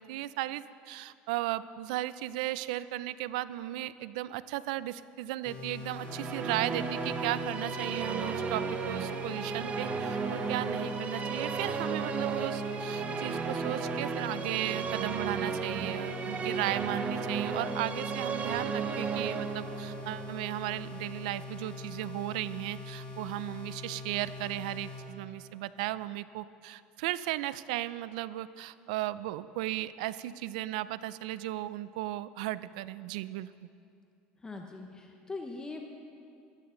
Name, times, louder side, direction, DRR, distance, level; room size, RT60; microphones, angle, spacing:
voice 1, 0.0-33.5, right 15 dB, 90° right, 17 dB, 0.4 m, -36 dB
sound 1, 5.4-25.1, left 3 dB, 40° left, 3.2 m, -43 dB
Musical instrument, 5.9-21.3, right 5 dB, 35° right, 0.8 m, -34 dB
voice 2, 34.4-35.9, left 3 dB, 15° left, 3 dB, 0.9 m, -41 dB
14.5 x 12.0 x 3.8 m, 2.6 s
supercardioid pair, 120°, 4 cm